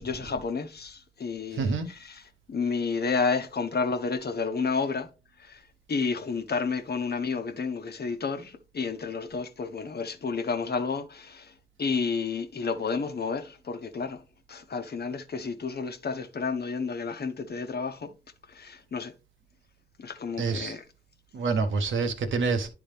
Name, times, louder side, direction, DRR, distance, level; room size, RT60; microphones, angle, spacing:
voice 1, 0.0-2.2 2.5-5.1 5.4-5.6 5.9-11.5 11.8-14.2 14.5-18.1 18.5-19.1 20.0-20.8, left 5 dB, 55° left, 1.0 m, -31 dB
voice 2, 1.5-1.9 20.4-20.8 21.3-22.7, right 4 dB, 80° right, 1.2 m, -27 dB
10.0 x 3.6 x 3.4 m
cardioid pair, 50°, 20 cm